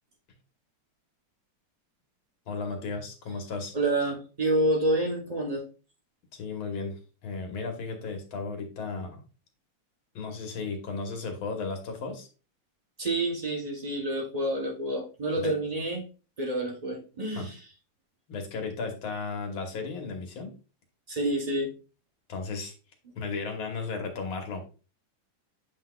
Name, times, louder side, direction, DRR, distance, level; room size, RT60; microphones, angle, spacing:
voice 1, 2.5-3.7 6.3-9.2 10.1-12.3 15.4-15.5 17.4-17.5 18.3-20.5 22.3-22.7 23.2-24.6, left 4 dB, 65° left, 4 dB, 2.0 m, -35 dB
voice 2, 3.7-5.6 13.0-16.0 16.4-17.6 21.1-21.7, right 1 dB, 60° right, -1 dB, 0.4 m, -28 dB
8.0 x 5.9 x 2.3 m, 0.34 s
omnidirectional pair, 2.4 m